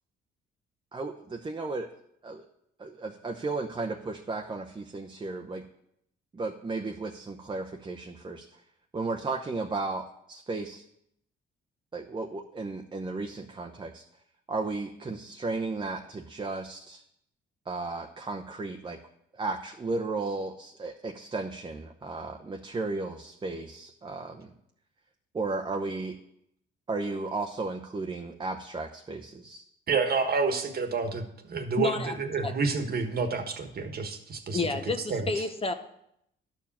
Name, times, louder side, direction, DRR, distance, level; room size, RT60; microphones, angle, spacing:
voice 1, 0.9-1.9 2.2-2.4 2.8-5.7 6.3-8.6 8.9-10.8 11.9-14.0 14.5-17.0 17.7-19.0 19.3-24.5 25.3-26.2 26.9-29.7, right 3 dB, 25° right, 2 dB, 0.8 m, -34 dB
voice 2, 29.9-34.6 35.1-35.5, right 4 dB, 50° right, 6 dB, 1.4 m, -29 dB
voice 3, 31.8-32.1 32.4-32.5 34.5-35.7, left 3 dB, 30° left, 8 dB, 0.9 m, -29 dB
12.0 x 4.8 x 7.3 m, 0.75 s
cardioid pair, 90°, 20 cm